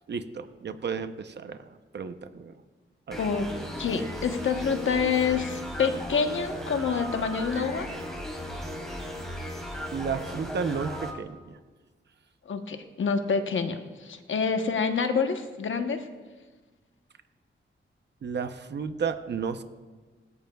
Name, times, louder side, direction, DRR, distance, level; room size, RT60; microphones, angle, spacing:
voice 1, 0.1-1.7 1.9-2.6 3.1-3.2 9.9-11.6 18.2-19.6, right 6 dB, 55° right, 9 dB, 0.7 m, -32 dB
sound 1, 3.1-11.1, equal, ahead, 2.5 m, -36 dB
voice 2, 3.2-3.5 3.8-7.9 12.5-16.1, left 5 dB, 70° left, 6 dB, 1.0 m, -27 dB
19.5 x 16.5 x 2.3 m, 1.3 s
wide cardioid pair, 170°, 21 cm